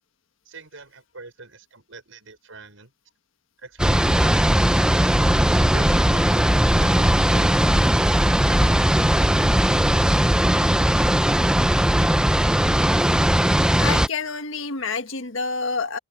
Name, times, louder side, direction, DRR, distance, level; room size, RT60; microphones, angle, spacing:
voice 1, 0.5-2.9 3.6-4.6 5.6-8.9, right 3 dB, 85° right, 5.2 m, -43 dB
sound 1, 3.8-14.1, equal, 5° right, 0.7 m, -18 dB
voice 2, 13.8-16.0, left 4 dB, 80° left, 1.5 m, -28 dB
head